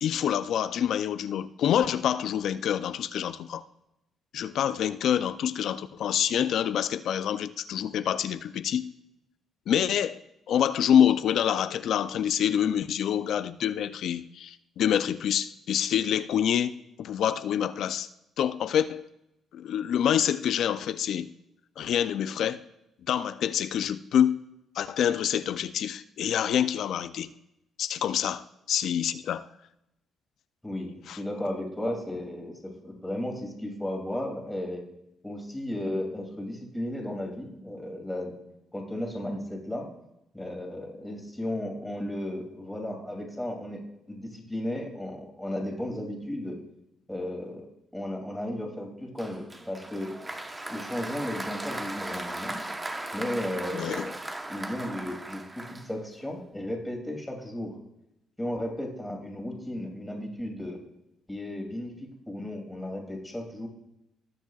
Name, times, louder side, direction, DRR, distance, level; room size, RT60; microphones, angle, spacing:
voice 1, 0.0-3.6 4.3-8.9 9.7-16.7 17.0-18.1 18.4-19.0 19.5-21.3 21.8-22.6 23.1-24.4 24.7-27.3 27.8-29.5 31.1-31.2 53.7-54.1, left 9 dB, 70° left, 0.4 m, -26 dB
voice 2, 30.6-34.8 35.2-38.3 38.7-39.9 40.3-43.8 44.1-46.6 47.1-47.7 47.9-50.1 50.7-52.6 53.1-54.2 54.5-57.7 58.4-60.8 61.3-63.7, left 1 dB, 5° left, 2.6 m, -34 dB
Applause, 49.2-56.3, right 2 dB, 20° right, 0.9 m, -37 dB
19.0 x 7.3 x 2.4 m
cardioid pair, 90°, 0 cm